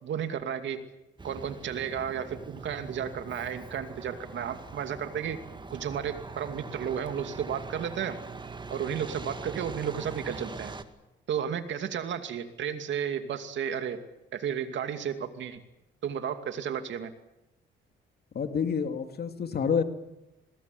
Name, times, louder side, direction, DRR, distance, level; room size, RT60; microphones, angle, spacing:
voice 1, 0.0-0.9 1.2-5.4 5.7-8.2 8.7-10.8 11.3-14.0 14.3-15.6 16.0-17.1, right 8 dB, 70° right, 8 dB, 2.6 m, -33 dB
Truck, 1.2-10.8, right 3 dB, 25° right, 1.9 m, -42 dB
voice 2, 18.3-19.8, left 6 dB, 50° left, 7 dB, 2.6 m, -28 dB
21.5 x 18.5 x 9.6 m, 0.93 s
cardioid pair, 90°, 20 cm